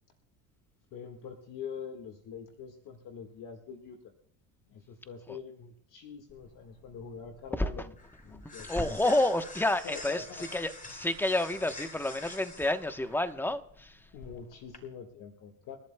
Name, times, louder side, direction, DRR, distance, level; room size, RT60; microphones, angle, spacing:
voice 1, 0.9-4.0 4.7-7.9 8.2-9.0 9.8-10.4 14.1-15.8, left 6 dB, 55° left, 4 dB, 1.7 m, -44 dB
sound 1, 6.3-14.8, left 2 dB, 20° left, 4.8 m, -48 dB
voice 2, 7.5-7.9 8.4-14.1, left 1 dB, 5° left, 9 dB, 1.0 m, -30 dB
29.5 x 11.5 x 2.3 m, 0.68 s
supercardioid pair, 105°, 37 cm